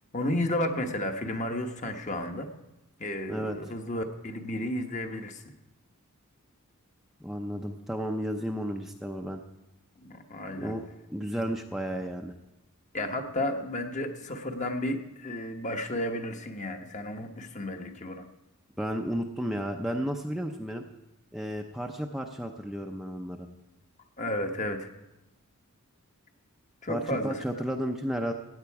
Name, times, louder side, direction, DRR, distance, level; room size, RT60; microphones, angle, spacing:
voice 1, 0.1-2.5 3.0-5.4 10.0-10.7 12.9-18.2 24.2-24.9 26.8-27.6, left 1 dB, 35° left, 5 dB, 1.1 m, -32 dB
voice 2, 3.3-3.7 7.2-9.4 10.5-12.3 18.8-20.8 21.3-23.5 26.9-28.3, equal, ahead, 2 dB, 0.5 m, -33 dB
16.0 x 9.5 x 4.7 m, 0.97 s
head